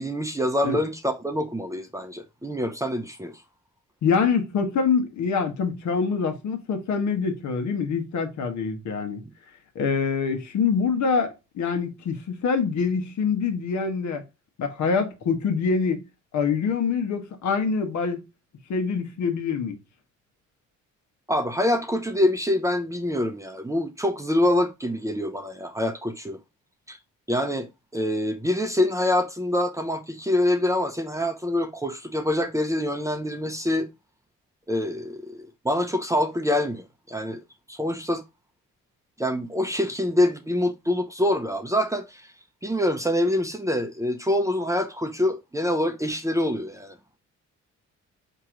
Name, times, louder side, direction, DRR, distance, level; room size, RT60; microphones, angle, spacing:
voice 1, 0.0-3.4 21.3-26.4 26.9-27.0 27.3-27.7 27.9-33.9 34.7-37.4 37.7-38.2 39.2-42.3 42.6-47.0, left 1 dB, 10° right, 0.7 m, -25 dB
voice 2, 4.0-9.2 9.7-14.2 14.6-16.0 16.3-18.2 18.7-19.8, left 5 dB, 70° left, 1.2 m, -25 dB
4.5 x 3.0 x 3.7 m
cardioid pair, 90°, 30 cm